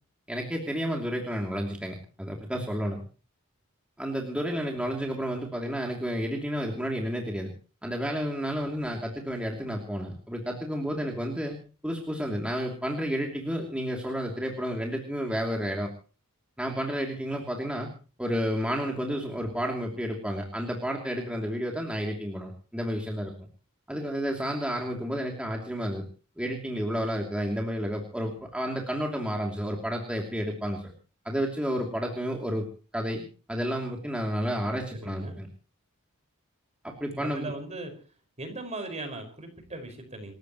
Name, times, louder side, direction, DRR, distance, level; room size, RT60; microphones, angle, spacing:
voice 1, 0.3-3.0 4.0-7.5 7.8-11.6 11.8-15.9 16.6-17.9 18.2-23.3 23.9-26.0 26.4-30.9 31.2-32.7 32.9-35.5 36.8-37.5, equal, 5° right, 0 dB, 2.9 m, -31 dB
voice 2, 34.9-35.4 37.1-37.9 38.4-40.3, right 2 dB, 30° right, 6 dB, 5.3 m, -38 dB
29.0 x 14.5 x 3.1 m, 0.37 s
head